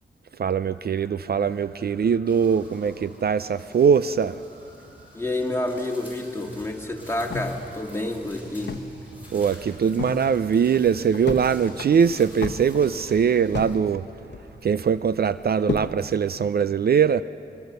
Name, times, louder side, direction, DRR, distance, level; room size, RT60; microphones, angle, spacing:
voice 1, 0.4-4.4 9.3-14.1 14.6-17.2, right 7 dB, 60° right, 14 dB, 0.4 m, -22 dB
sound 1, 0.6-15.2, right 1 dB, 85° right, 3.6 m, -50 dB
sound 2, 2.2-13.8, equal, 10° right, 6.4 m, -51 dB
voice 2, 5.1-8.8, left 1 dB, 15° left, 1 dB, 2.1 m, -29 dB
sound 3, 7.3-9.0 9.3-9.4 9.7-10.2 10.6-11.5 11.8-13.8 14.1-14.8 15.2-16.0, left 5 dB, 75° left, 0.9 m, -32 dB
21.5 x 21.5 x 6.7 m, 2.7 s
wide cardioid pair, 100°, 18 cm